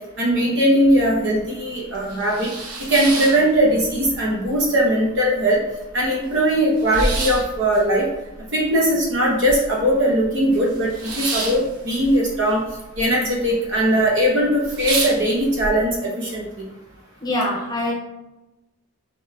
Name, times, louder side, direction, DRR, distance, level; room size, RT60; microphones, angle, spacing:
voice 1, 0.2-2.5 2.9-5.6 5.9-8.1 8.5-12.6 13.0-16.4, right 1 dB, 55° right, -3 dB, 1.0 m, -19 dB
sound 1, 1.4-1.5 1.9-4.1 4.4-5.2 5.5-5.6 5.8-9.9 10.2-13.0 13.3-13.8 14.2-14.3 14.6-15.7, right 2 dB, 85° right, 0.8 m, -29 dB
voice 2, 17.2-17.9, left 1 dB, 20° left, -2 dB, 0.9 m, -23 dB
4.2 x 3.5 x 3.3 m, 0.99 s
head